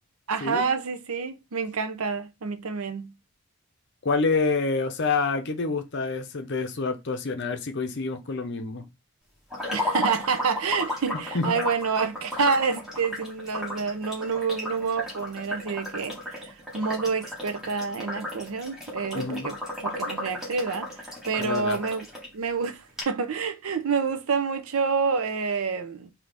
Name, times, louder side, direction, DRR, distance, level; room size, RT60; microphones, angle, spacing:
voice 1, 0.3-3.1 9.7-19.6 19.8-22.1 22.3-26.1, right 5 dB, 80° right, 0.6 m, -28 dB
voice 2, 4.0-8.9 11.3-11.6 19.1-19.5 21.4-21.8, left 4 dB, 50° left, 0.6 m, -27 dB
sound 1, 9.5-22.3 22.6-22.7 23.0-23.1, left 1 dB, ahead, 1.4 m, -35 dB
4.0 x 2.8 x 3.4 m
head